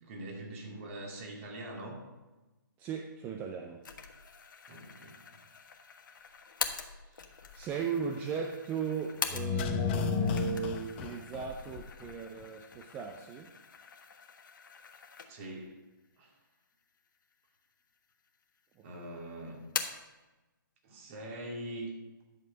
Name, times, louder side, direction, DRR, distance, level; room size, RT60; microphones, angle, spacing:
voice 1, 0.0-2.0 4.7-5.2 15.3-15.8 16.2-16.3 18.8-19.6 20.8-21.9, right 1 dB, 35° right, 1 dB, 2.4 m, -43 dB
voice 2, 2.8-3.8 7.0-13.5 19.0-19.2, right 7 dB, 15° right, 4 dB, 0.5 m, -37 dB
sound 1, 3.8-9.8 10.2-15.6 16.0-16.1 17.0-17.6 18.0-18.7 19.0-20.1, left 6 dB, 65° left, 1.3 m, -43 dB
sound 2, 9.3-12.1 12.4-12.5, left 7 dB, 30° left, 0.7 m, -33 dB
11.0 x 6.9 x 5.1 m, 1.1 s
hypercardioid pair, 150°, 11 cm